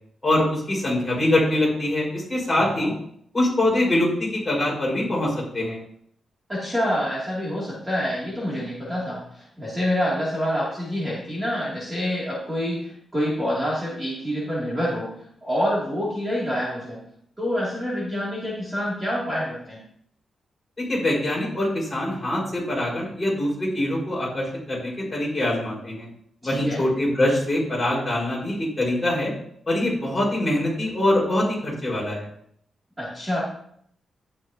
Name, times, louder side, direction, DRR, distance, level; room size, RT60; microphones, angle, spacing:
voice 1, 0.2-2.9 3.3-5.8 20.9-26.1 26.4-29.3 29.7-32.3, left 1 dB, 15° left, -5 dB, 4.9 m, -24 dB
voice 2, 6.5-17.0 17.4-19.8 26.4-26.8 33.0-33.4, equal, 10° right, -7 dB, 2.7 m, -27 dB
12.0 x 9.6 x 2.9 m, 0.68 s
wide cardioid pair, 160°, 0 cm